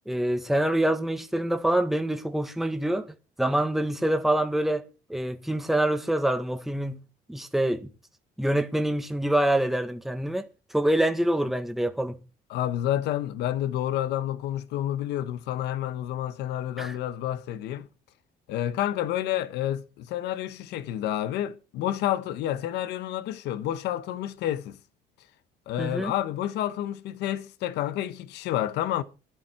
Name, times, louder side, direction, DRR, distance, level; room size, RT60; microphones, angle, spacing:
voice 1, 0.1-3.1 3.4-4.8 5.1-7.0 7.3-7.9 8.4-12.2 16.8-16.9 25.8-26.1, right 1 dB, ahead, 1.6 m, -26 dB
voice 2, 12.5-17.9 18.5-24.8 25.7-29.0, left 12 dB, 85° left, 1.4 m, -29 dB
17.0 x 12.0 x 4.6 m
cardioid pair, 110°, 17 cm